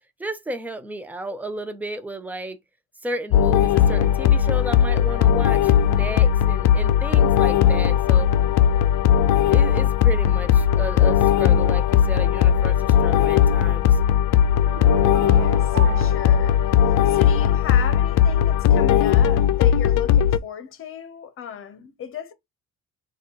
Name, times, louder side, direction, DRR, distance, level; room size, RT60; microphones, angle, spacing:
voice 1, 0.2-2.6 3.0-8.3 9.5-14.0, right 1 dB, 5° right, 0.6 m, -33 dB
sound 1, 3.3-20.4, left 9 dB, 75° left, 0.5 m, -18 dB
sound 2, 14.7-17.7, right 8 dB, 50° right, 0.7 m, -36 dB
voice 2, 15.1-16.6 17.1-22.3, left 8 dB, 40° left, 1.0 m, -36 dB
4.0 x 2.5 x 4.5 m
cardioid pair, 140°, 31 cm